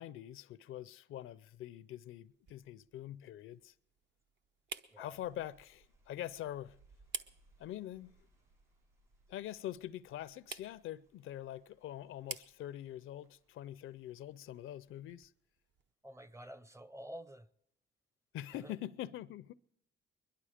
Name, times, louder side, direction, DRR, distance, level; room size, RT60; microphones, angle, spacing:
voice 1, 0.0-3.7 5.0-6.8 7.6-8.1 9.3-15.3 18.3-19.5, left 12 dB, 70° left, 0.5 m, -44 dB
sound 1, 1.1-15.9, right 6 dB, 60° right, 0.9 m, -53 dB
sound 2, 5.0-14.9, right 2 dB, 90° right, 7.4 m, -70 dB
voice 2, 16.0-17.5 18.5-18.8, equal, 15° right, 0.6 m, -50 dB
22.0 x 11.5 x 5.0 m
cardioid pair, 80°, 21 cm